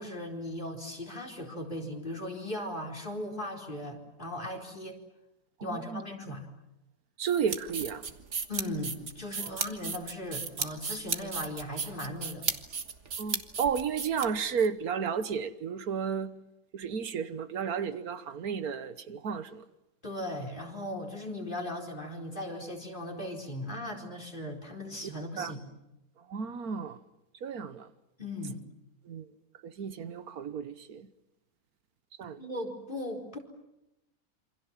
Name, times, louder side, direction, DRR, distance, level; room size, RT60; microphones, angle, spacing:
voice 1, 0.0-5.0 5.6-6.5 8.5-12.4 20.0-25.6 28.2-28.6 32.4-33.4, left 1 dB, 35° left, 4.5 m, -38 dB
voice 2, 5.6-6.0 7.2-8.1 9.4-9.6 13.2-16.3 16.7-19.6 25.4-25.5 26.3-27.0 27.4-27.9 29.1-29.2 29.6-31.1 32.2-32.4, right 6 dB, 90° right, 1.7 m, -33 dB
sound 1, 7.2-14.7, right 5 dB, 55° right, 1.8 m, -35 dB
28.0 x 26.0 x 7.4 m
omnidirectional pair, 1.5 m